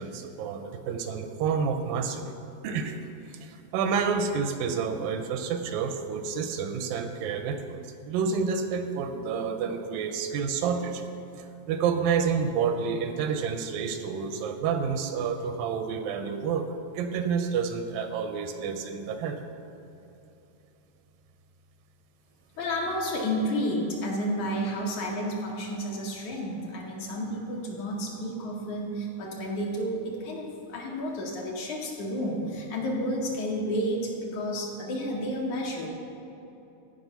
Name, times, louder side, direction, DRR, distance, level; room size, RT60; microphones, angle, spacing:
voice 1, 0.0-2.4 2.6-3.0 3.3-11.0 11.4-16.7 16.9-19.4, right 6 dB, 85° right, 7 dB, 2.2 m, -29 dB
voice 2, 22.6-35.9, equal, 65° left, -1 dB, 2.3 m, -31 dB
15.0 x 5.1 x 5.4 m, 3.0 s
omnidirectional pair, 4.1 m